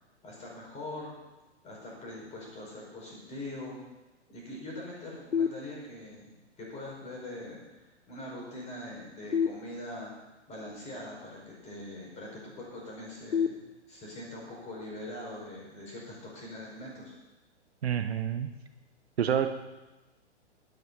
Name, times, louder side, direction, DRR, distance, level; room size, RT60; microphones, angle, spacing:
voice 1, 0.2-1.1 1.6-3.8 4.3-6.3 6.6-10.1 10.5-13.6 13.9-17.1, left 1 dB, 20° left, -2 dB, 5.0 m, -42 dB
sound 1, 5.3-6.3 9.3-10.3 13.3-14.3, left 7 dB, 80° left, 1.0 m, -32 dB
voice 2, 17.8-18.5 19.2-19.5, right 9 dB, 60° right, 9 dB, 0.9 m, -28 dB
12.0 x 10.5 x 5.4 m, 1.1 s
figure-of-eight pair, 115°, 35 cm